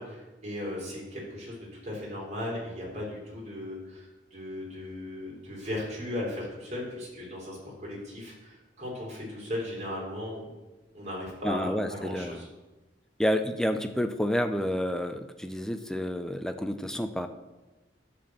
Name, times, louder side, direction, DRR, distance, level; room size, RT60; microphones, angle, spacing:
voice 1, 0.0-1.5 1.8-10.5 10.9-12.5, left 1 dB, 40° right, -3 dB, 3.3 m, -37 dB
voice 2, 11.4-12.5 13.2-17.3, equal, 5° left, 8 dB, 0.5 m, -29 dB
10.5 x 4.3 x 7.2 m, 1.1 s
head